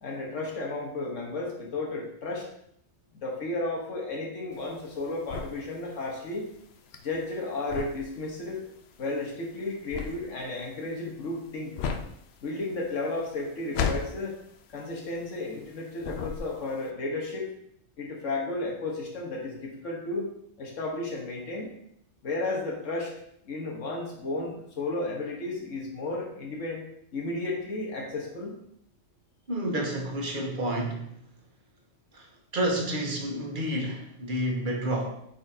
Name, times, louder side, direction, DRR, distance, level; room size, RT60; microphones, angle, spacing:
voice 1, 0.0-2.5 3.2-6.5 7.0-8.6 9.0-11.8 12.4-14.4 14.7-17.5 18.0-20.3 20.6-21.7 22.2-23.1 23.4-26.8 27.1-28.6, left 2 dB, 85° left, -1 dB, 1.7 m, -33 dB
sound 1, 4.5-15.7 16.0-16.8, left 6 dB, 65° left, 0.8 m, -35 dB
voice 2, 29.5-31.1 32.1-35.1, right 1 dB, 45° right, 1 dB, 1.2 m, -30 dB
8.5 x 4.1 x 2.8 m, 0.73 s
omnidirectional pair, 1.2 m